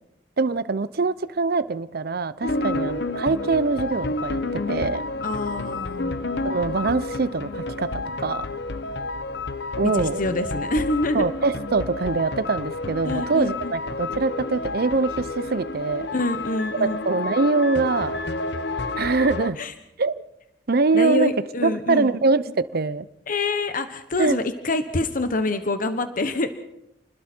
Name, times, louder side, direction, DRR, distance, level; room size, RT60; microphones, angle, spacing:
voice 1, 0.4-5.0 6.4-8.5 9.8-10.2 11.1-16.1 16.8-18.2 19.0-19.6 20.0-20.1 20.7-21.3 21.6-23.1 24.2-24.4, right 3 dB, 60° right, 16 dB, 0.7 m, -23 dB
sound 1, 2.4-19.5, left 2 dB, 65° left, 1.0 m, -30 dB
voice 2, 2.5-2.8 5.2-6.1 9.8-11.3 13.0-13.7 16.1-17.0 19.6-19.7 20.9-22.1 23.3-26.5, left 2 dB, 50° left, 9 dB, 1.2 m, -26 dB
29.5 x 20.5 x 4.5 m, 0.83 s
head